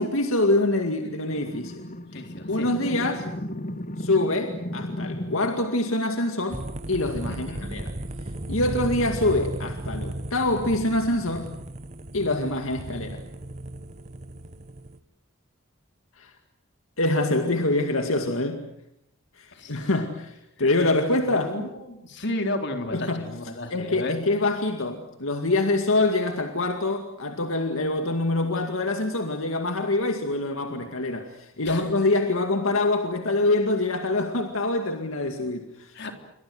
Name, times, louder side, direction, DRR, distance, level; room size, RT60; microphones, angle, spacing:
voice 1, 0.0-1.8 2.5-3.3 4.0-6.6 6.9-7.8 8.5-11.5 12.1-13.2 16.2-16.3 17.0-18.6 19.4-21.5 22.9-23.3 23.7-36.1, left 2 dB, 70° left, 5 dB, 2.2 m, -25 dB
sound 1, 1.3-5.7, left 1 dB, 35° left, 1.1 m, -35 dB
voice 2, 2.1-2.7 7.3-7.7 19.5-19.9 20.6-20.9 21.2-24.2 31.7-31.9 35.9-36.1, left 1 dB, 55° left, 5 dB, 3.7 m, -33 dB
sound 2, 6.5-15.0, right 1 dB, 35° right, 1.3 m, -35 dB
28.5 x 24.5 x 7.8 m, 0.81 s
head